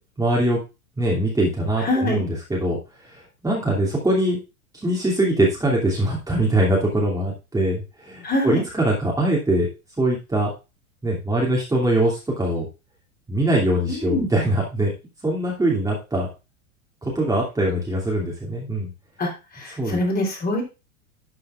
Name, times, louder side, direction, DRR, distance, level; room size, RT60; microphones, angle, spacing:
voice 1, 0.2-0.6 1.0-4.4 4.7-9.7 10.0-10.5 11.0-12.7 13.3-14.9 15.2-16.3 17.0-18.9 19.8-20.0, right 1 dB, 10° right, -3 dB, 2.8 m, -22 dB
voice 2, 1.8-2.2 8.2-8.6 13.9-14.3 19.2-20.6, left 1 dB, 20° left, 1 dB, 3.6 m, -24 dB
12.5 x 6.8 x 2.5 m, 0.27 s
figure-of-eight pair, 100°, 43 cm